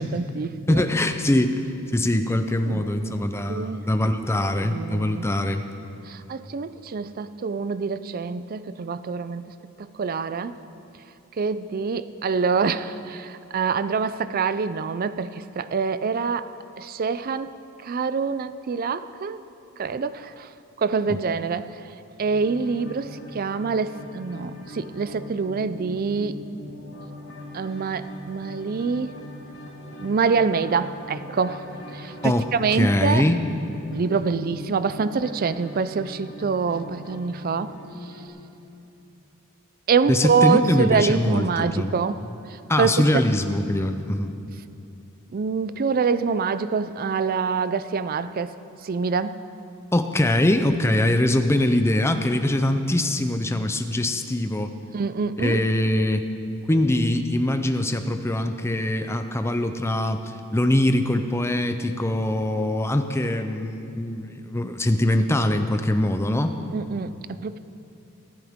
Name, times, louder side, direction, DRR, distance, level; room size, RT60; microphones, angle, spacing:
voice 1, 0.0-0.9 2.7-3.9 4.4-5.3 6.1-9.4 9.8-10.6 11.4-16.5 16.8-17.5 17.8-19.4 19.8-20.5 20.8-21.8 22.2-26.4 27.5-29.2 30.0-31.7 31.9-33.2 33.9-37.8 38.0-38.1 39.9-42.2 42.5-42.9 45.3-48.5 48.8-49.4 54.9-55.6 66.7-67.6, right 5 dB, 40° right, 14 dB, 0.4 m, -26 dB
voice 2, 0.7-1.6 1.9-5.6 32.2-33.4 40.1-41.9 42.7-44.3 49.9-54.7 55.4-56.3 56.7-60.2 60.5-66.6, left 1 dB, 10° left, 8 dB, 0.5 m, -22 dB
sound 1, 22.2-38.3, left 1 dB, 60° left, 1.7 m, -41 dB
24.5 x 9.5 x 3.6 m, 2.7 s
head